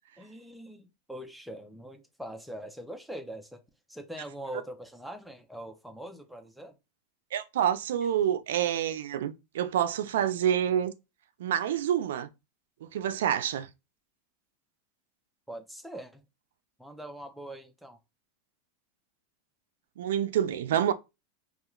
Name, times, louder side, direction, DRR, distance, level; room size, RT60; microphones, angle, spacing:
voice 1, 0.2-3.6 3.9-6.8 15.5-16.3 16.8-18.0, right 1 dB, ahead, 0.3 m, -42 dB
voice 2, 7.3-10.9 11.4-12.3 12.8-13.7 20.0-20.9, right 10 dB, 90° right, 0.3 m, -27 dB
2.3 x 2.3 x 2.9 m
supercardioid pair, 160°, 0 cm